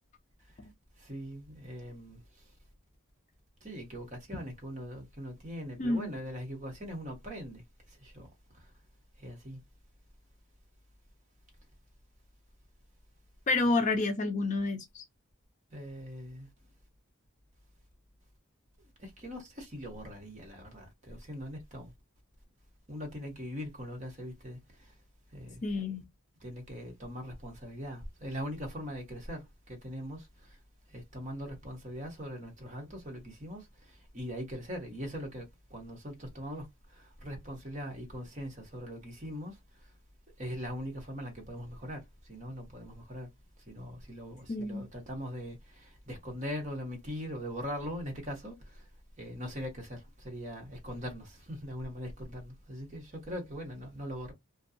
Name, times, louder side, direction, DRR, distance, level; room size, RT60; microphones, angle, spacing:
voice 1, 1.0-2.5 3.6-8.3 8.5-8.7 9.2-9.6 15.7-16.5 19.0-21.9 22.9-24.9 25.3-25.6 26.4-30.6 30.9-39.9 40.4-43.3 43.7-48.9 49.2-54.3, equal, 35° right, 0.9 m, -41 dB
voice 2, 13.5-15.0 25.6-26.0 44.5-44.9, left 3 dB, 35° left, 0.4 m, -29 dB
2.6 x 2.2 x 2.5 m
head